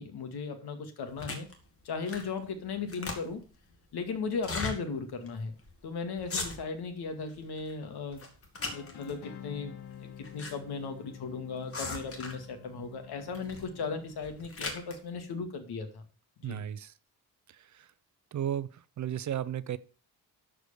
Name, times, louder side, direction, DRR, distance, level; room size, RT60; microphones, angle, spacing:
voice 1, 0.0-1.5 1.8-3.4 3.9-5.5 5.8-8.2 8.7-16.0 16.4-16.6, left 4 dB, 70° left, 2.3 m, -37 dB
sound 1, 1.2-1.5 2.0-2.4 2.7-3.5 4.3-4.8 5.3-5.4 5.6-5.8 6.2-6.8 7.3-7.7 8.1-9.1 9.9-10.5 10.8-10.9 11.7-12.5 13.3-13.7 14.1-15.0, left 3 dB, 35° left, 2.4 m, -38 dB
sound 2, 8.6-14.5, left 9 dB, 90° left, 1.8 m, -49 dB
voice 2, 16.4-16.9 17.5-17.9 18.3-19.8, right 10 dB, 45° right, 0.6 m, -35 dB
12.5 x 5.0 x 6.8 m
wide cardioid pair, 170°, 39 cm